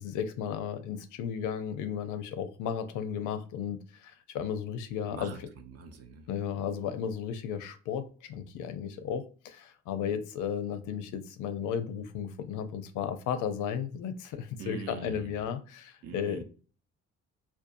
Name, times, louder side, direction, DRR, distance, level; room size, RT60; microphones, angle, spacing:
voice 1, 0.0-5.3 6.3-16.4, left 8 dB, 85° left, 0.5 m, -34 dB
voice 2, 5.1-6.3 14.6-15.5 16.0-16.4, right 6 dB, 55° right, 0.6 m, -44 dB
2.6 x 2.2 x 2.5 m
cardioid pair, 90°, 30 cm